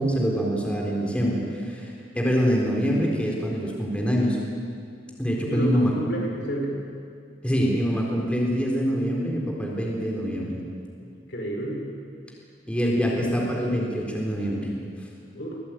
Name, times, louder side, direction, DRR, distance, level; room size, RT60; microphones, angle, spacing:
voice 1, 0.0-4.4 5.2-5.9 7.4-10.6 12.7-14.7, equal, 5° left, -2 dB, 4.0 m, -25 dB
voice 2, 5.5-6.8 11.3-11.8 15.3-15.6, right 1 dB, 70° left, 0 dB, 5.0 m, -30 dB
24.0 x 18.0 x 9.2 m, 2.3 s
head